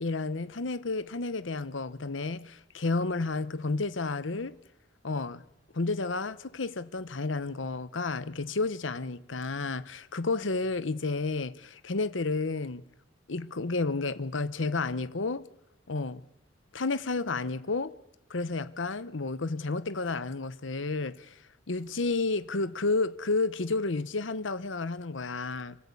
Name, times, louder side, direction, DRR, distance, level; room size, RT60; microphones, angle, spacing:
voice 1, 0.0-4.6 5.0-5.4 5.7-12.8 13.3-15.4 15.9-16.2 16.7-17.9 18.3-21.3 21.7-25.8, left 3 dB, 90° left, 1.0 m, -31 dB
25.5 x 15.0 x 8.4 m
head